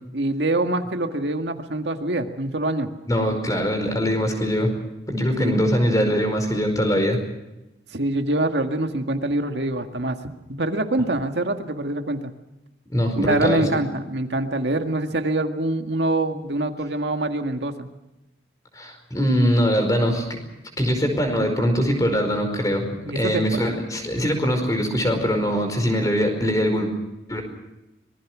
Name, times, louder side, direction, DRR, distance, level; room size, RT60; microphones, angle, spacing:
voice 1, 0.1-2.9 5.4-5.6 7.9-10.2 10.5-12.3 13.2-17.9 23.1-23.7, right 2 dB, 80° right, 5 dB, 1.9 m, -25 dB
voice 2, 3.1-4.7 5.1-7.2 12.9-13.7 18.7-20.4 20.8-22.8 23.1-26.9 27.3-27.4, equal, 20° left, 5 dB, 5.0 m, -22 dB
25.5 x 21.0 x 6.2 m, 0.97 s
head